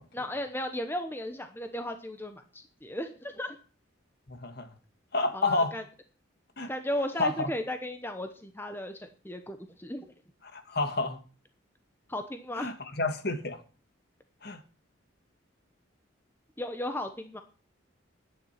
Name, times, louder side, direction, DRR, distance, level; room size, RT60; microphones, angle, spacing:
voice 1, 0.1-3.6 5.3-5.8 6.7-10.1 12.1-12.7 16.6-17.4, left 1 dB, 10° left, 0.9 m, -35 dB
voice 2, 4.3-4.7 5.1-5.8 6.6-6.7 7.2-7.5 10.5-11.2 12.6-13.6 14.4-14.6, left 3 dB, 50° left, 1.7 m, -29 dB
11.5 x 9.7 x 5.8 m
head